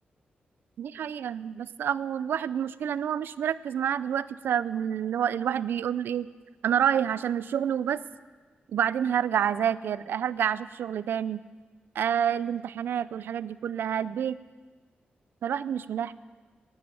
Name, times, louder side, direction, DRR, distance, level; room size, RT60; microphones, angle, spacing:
voice 1, 0.8-6.3 6.6-8.0 8.7-11.4 12.0-14.4 15.4-16.1, right 9 dB, 90° right, 17 dB, 0.4 m, -28 dB
12.0 x 11.5 x 7.7 m, 1.4 s
wide cardioid pair, 105°, 4 cm